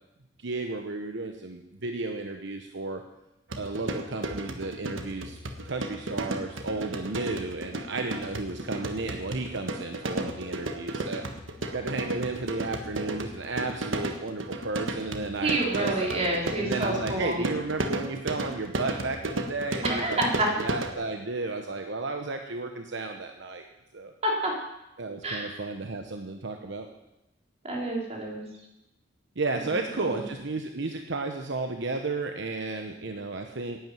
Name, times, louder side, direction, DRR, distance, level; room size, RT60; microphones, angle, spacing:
voice 1, 0.4-3.0 3.6-5.4 5.6-11.2 11.7-16.1 16.6-20.3 20.6-23.6 23.9-24.1 25.0-26.9 29.4-33.8, right 3 dB, 70° right, 5 dB, 1.0 m, -33 dB
sound 1, 3.5-20.9, right 2 dB, 85° right, 1.4 m, -34 dB
voice 2, 15.4-17.4 19.8-20.5 24.2-24.5 25.2-25.5 27.6-28.4 29.6-30.2, right 1 dB, 35° right, -1 dB, 3.6 m, -28 dB
11.5 x 9.0 x 9.2 m, 0.92 s
head